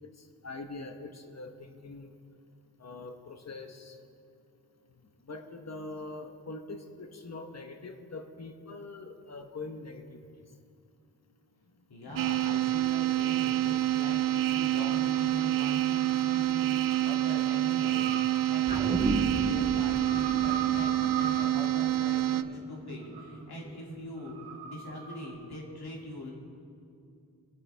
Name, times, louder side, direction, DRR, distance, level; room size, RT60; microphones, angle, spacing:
voice 1, 0.0-2.2 2.8-4.0 5.2-10.2 12.0-12.5, left 3 dB, 45° left, 5 dB, 1.1 m, -43 dB
voice 2, 11.9-24.4 24.6-26.3, left 1 dB, 80° left, -2 dB, 2.6 m, -42 dB
sound 1, 12.2-22.4, right 14 dB, 60° right, 0.5 m, -27 dB
sound 2, 14.9-25.3, right 5 dB, 80° right, 1.9 m, -42 dB
sound 3, 18.7-23.3 23.6-23.7, right 1 dB, 15° right, 1.4 m, -35 dB
24.0 x 8.0 x 3.5 m, 2.5 s
wide cardioid pair, 95°, 38 cm